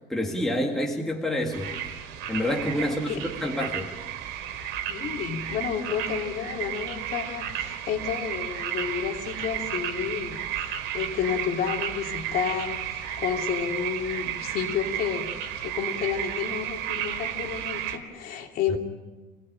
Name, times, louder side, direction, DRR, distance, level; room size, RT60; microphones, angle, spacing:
voice 1, 0.1-1.7 2.3-3.9, left 1 dB, ahead, -1 dB, 2.1 m, -28 dB
sound 1, 1.5-18.0, right 10 dB, 70° right, 3.3 m, -33 dB
voice 2, 4.9-18.8, left 8 dB, 45° left, 2 dB, 3.0 m, -31 dB
27.0 x 18.0 x 9.0 m, 1.2 s
cardioid pair, 170°, 21 cm